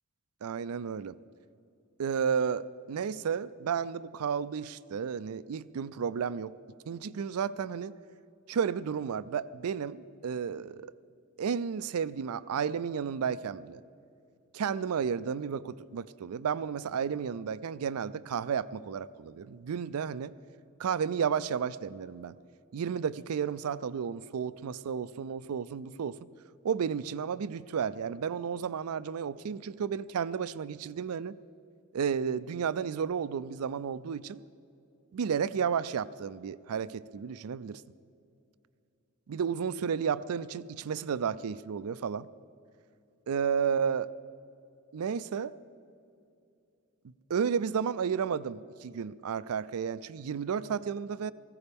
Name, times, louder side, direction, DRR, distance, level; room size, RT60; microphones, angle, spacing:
voice 1, 0.4-1.2 2.0-6.5 6.9-7.9 8.5-10.9 11.4-13.8 14.5-20.3 20.8-22.4 22.7-26.3 26.6-31.4 31.9-34.4 35.1-37.8 39.3-42.3 43.3-44.1 44.9-45.5 47.3-51.3, right 7 dB, 75° right, 17 dB, 0.4 m, -32 dB
18.5 x 15.5 x 3.5 m, 2.6 s
head